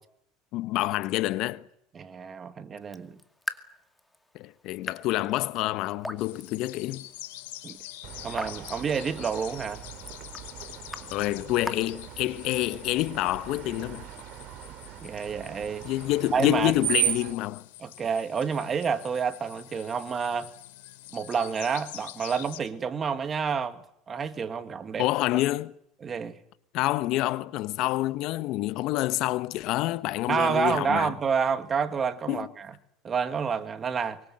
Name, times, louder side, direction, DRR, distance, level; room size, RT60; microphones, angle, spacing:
voice 1, 0.5-1.6 4.3-7.1 11.1-14.1 15.8-17.6 25.0-25.7 26.7-31.1 32.3-32.5, left 16 dB, 60° left, 1.2 m, -27 dB
voice 2, 1.9-3.2 7.6-7.8 8.2-9.8 15.0-15.8 16.3-16.7 17.8-20.5 21.1-23.8 24.1-25.1 26.0-26.4 30.3-32.7 33.0-34.2, right 6 dB, 30° right, 2.2 m, -29 dB
Raindrop / Drip, 2.8-12.7, left 1 dB, 5° left, 2.2 m, -43 dB
sound 1, 6.2-22.6, left 16 dB, 85° left, 3.1 m, -46 dB
Screech, 8.0-17.3, right 12 dB, 55° right, 3.2 m, -36 dB
24.5 x 23.5 x 7.8 m
supercardioid pair, 115°, 0 cm